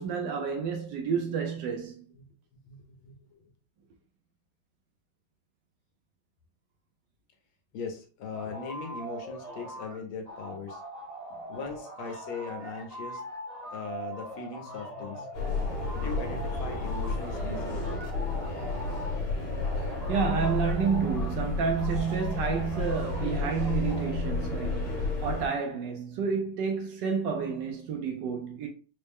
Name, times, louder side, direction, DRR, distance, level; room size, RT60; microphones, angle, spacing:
voice 1, 0.0-2.1 19.8-28.7, right 6 dB, 75° right, 1.1 m, -30 dB
voice 2, 3.0-3.4 7.7-10.8 11.5-13.2 13.7-17.9, left 4 dB, 75° left, 1.6 m, -39 dB
sound 1, 8.3-10.0 10.2-19.2 19.6-21.4 21.8-24.1, right 1 dB, 40° right, 0.6 m, -42 dB
sound 2, 15.3-25.5, left 3 dB, 60° left, 1.6 m, -31 dB
4.3 x 2.0 x 3.4 m
omnidirectional pair, 2.3 m